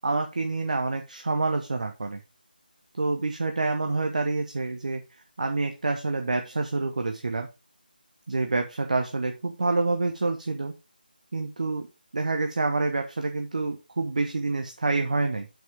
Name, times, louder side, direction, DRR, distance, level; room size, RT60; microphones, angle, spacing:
voice 1, 0.0-2.2 2.9-5.0 5.4-7.5 8.3-10.7 11.3-11.9 12.1-15.5, right 3 dB, 50° right, 5 dB, 1.0 m, -27 dB
7.5 x 5.8 x 3.5 m, 0.28 s
figure-of-eight pair, 160°, 5 cm